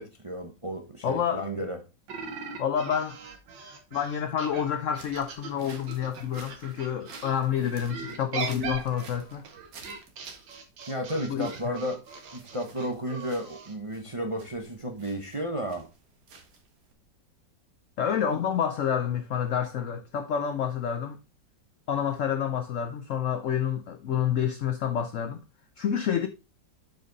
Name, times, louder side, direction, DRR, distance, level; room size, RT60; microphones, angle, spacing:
voice 1, 0.0-1.8 10.9-12.0 12.3-15.9, equal, 25° right, 0.6 m, -33 dB
voice 2, 1.0-1.5 2.6-3.2 3.9-9.4 11.3-11.7 18.0-21.2 21.9-25.4 25.8-26.3, left 8 dB, 75° left, 0.7 m, -28 dB
sound 1, 2.1-7.3 7.9-13.7, right 5 dB, 90° right, 2.0 m, -40 dB
sound 2, 4.9-16.9, right 4 dB, 55° right, 1.6 m, -52 dB
7.8 x 5.1 x 3.9 m
omnidirectional pair, 2.0 m